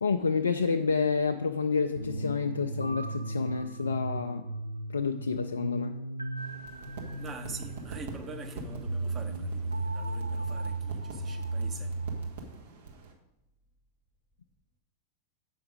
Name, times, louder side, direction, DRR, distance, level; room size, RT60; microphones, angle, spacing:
voice 1, 0.0-4.4 4.9-6.0, left 5 dB, 75° left, 0.3 m, -29 dB
sound 1, 2.0-12.3, right 2 dB, 85° right, 0.5 m, -35 dB
sound 2, 6.4-13.1, right 4 dB, 55° right, 1.3 m, -45 dB
voice 2, 7.2-11.9, right 4 dB, 20° right, 1.0 m, -44 dB
7.7 x 5.8 x 4.9 m
figure-of-eight pair, 90°, 0 cm